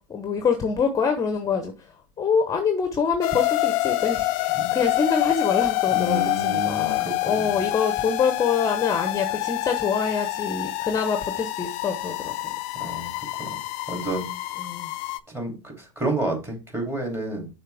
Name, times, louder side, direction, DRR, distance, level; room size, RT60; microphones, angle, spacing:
voice 1, 0.1-12.5 14.6-14.9, left 5 dB, 20° left, 7 dB, 0.9 m, -25 dB
sound 1, 3.2-15.2, left 19 dB, 45° left, 0.5 m, -27 dB
voice 2, 5.9-7.6 12.8-13.1 13.4-13.6 13.9-14.3 15.3-17.5, right 1 dB, 15° right, 0 dB, 2.9 m, -30 dB
6.6 x 4.3 x 3.4 m, 0.31 s
hypercardioid pair, 105°, 18 cm